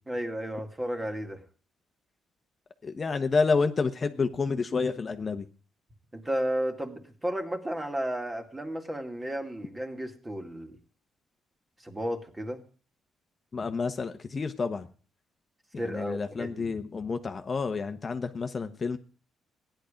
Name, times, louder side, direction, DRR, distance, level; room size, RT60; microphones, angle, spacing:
voice 1, 0.1-1.4 6.1-10.8 11.8-12.6 15.8-16.7, equal, 15° right, 5 dB, 2.3 m, -33 dB
voice 2, 2.8-5.4 13.5-14.9 15.9-19.0, left 4 dB, 35° left, 7 dB, 1.1 m, -29 dB
15.5 x 10.5 x 5.2 m, 0.41 s
cardioid pair, 90°, 0 cm